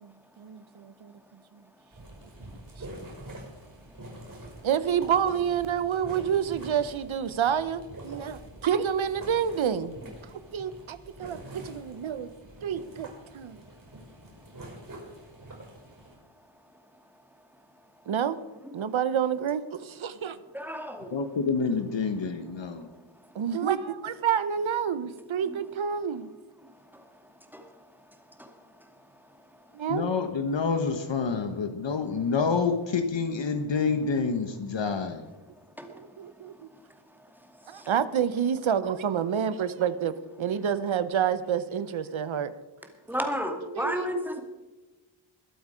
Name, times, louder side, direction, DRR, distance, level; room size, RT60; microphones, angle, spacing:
voice 1, 0.0-1.1 2.8-2.9 4.6-10.0 10.2-12.3 12.6-13.1 13.3-13.6 18.1-18.4 18.7-20.4 23.3-26.3 29.7-30.1 35.9-36.5 37.7-42.5 43.6-44.4, right 8 dB, 75° right, 14 dB, 0.8 m, -28 dB
sound 1, 1.9-16.1, right 1 dB, 45° right, 5.9 m, -46 dB
voice 2, 20.5-21.2 27.5-27.7 28.4-28.5 35.8-35.9 37.7-37.9 43.1-44.4, equal, 5° right, 3 dB, 2.3 m, -31 dB
voice 3, 21.1-22.9 29.9-35.2, left 5 dB, 65° left, 7 dB, 1.2 m, -28 dB
21.5 x 8.2 x 5.0 m, 1.2 s
wide cardioid pair, 105°, 47 cm